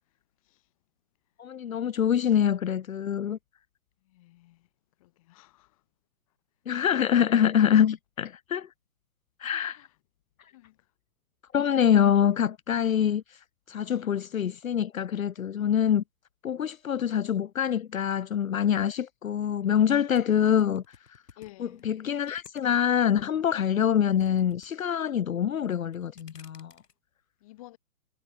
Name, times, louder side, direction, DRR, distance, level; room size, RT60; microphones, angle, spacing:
voice 1, 1.4-3.4 6.7-8.7 9.4-9.8 11.5-13.2 13.7-16.0 16.4-20.8 21.6-26.7, left 9 dB, 60° left, 1.3 m, -25 dB
voice 2, 4.1-4.7 5.0-5.8 9.5-9.9 10.5-10.8 20.4-20.5 21.4-21.8 27.4-27.8, left 18 dB, 20° left, 2.1 m, -52 dB
sound 1, 20.1-23.0 23.4-24.7 25.0-25.4 25.8-26.9, left 6 dB, 85° left, 6.3 m, -55 dB
hypercardioid pair, 170°, 47 cm